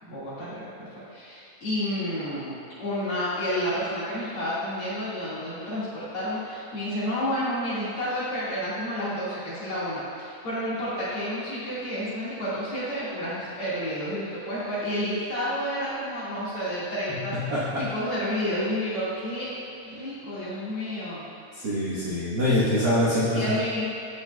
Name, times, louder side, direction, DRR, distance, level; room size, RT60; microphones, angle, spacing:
voice 1, 0.0-19.5 19.8-21.2 23.3-23.9, equal, 50° left, -10 dB, 2.7 m, -30 dB
voice 2, 17.3-17.8 21.5-23.6, left 1 dB, 55° right, -9 dB, 1.2 m, -24 dB
13.5 x 5.4 x 2.3 m, 2.7 s
omnidirectional pair, 3.4 m